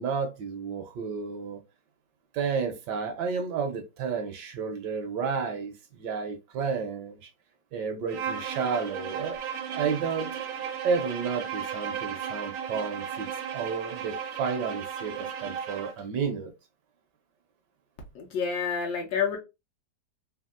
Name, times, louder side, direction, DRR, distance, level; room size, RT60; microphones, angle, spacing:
voice 1, 0.0-1.6 2.3-7.3 7.7-9.4 9.7-10.3 10.8-13.3 13.5-16.5, right 5 dB, 75° right, 1.1 m, -31 dB
Bowed string instrument, 8.1-16.0, right 8 dB, 90° right, 1.3 m, -35 dB
voice 2, 18.1-19.4, left 6 dB, 70° left, 1.0 m, -28 dB
3.4 x 2.3 x 2.3 m
omnidirectional pair, 2.0 m